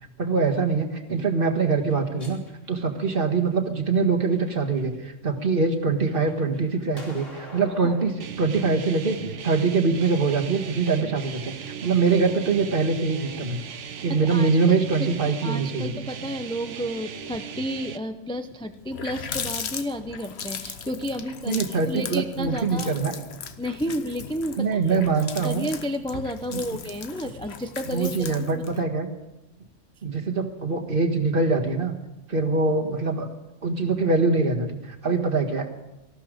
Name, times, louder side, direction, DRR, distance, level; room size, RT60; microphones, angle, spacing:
voice 1, 0.2-2.4 2.7-13.6 14.0-15.9 21.5-23.2 24.6-25.7 26.5-26.6 27.9-29.1 30.0-31.9 32.3-33.3 33.6-35.7, right 4 dB, 45° right, 3 dB, 1.9 m, -23 dB
sound 1, 1.8-3.5 4.1-5.0 5.4-8.1, left 1 dB, 80° left, 3.6 m, -46 dB
sound 2, 8.2-18.0, right 8 dB, 70° right, 1.2 m, -38 dB
voice 2, 14.1-22.9 23.6-25.0 25.4-28.6, equal, 5° left, 7 dB, 0.5 m, -32 dB
Water tap faucet, 18.4-18.5 18.7-28.8, left 6 dB, 60° left, 1.2 m, -37 dB
19.0 x 14.5 x 5.1 m, 0.96 s
omnidirectional pair, 1.3 m